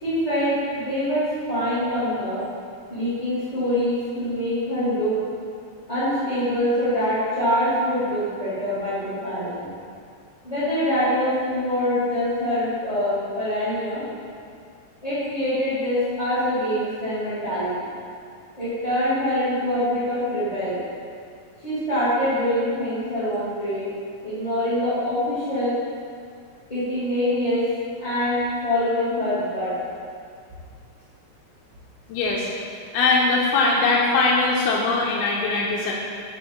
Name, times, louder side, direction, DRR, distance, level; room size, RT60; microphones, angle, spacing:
voice 1, 0.0-2.4 2.9-5.1 5.9-9.7 10.4-14.0 15.0-17.7 18.6-20.8 21.6-23.8 24.2-25.7 26.7-27.6 28.0-29.7, left 1 dB, 20° left, -13 dB, 1.1 m, -24 dB
voice 2, 32.1-32.5 32.9-35.9, left 3 dB, 85° left, -3 dB, 2.2 m, -21 dB
9.6 x 3.7 x 3.8 m, 2.3 s
omnidirectional pair, 3.5 m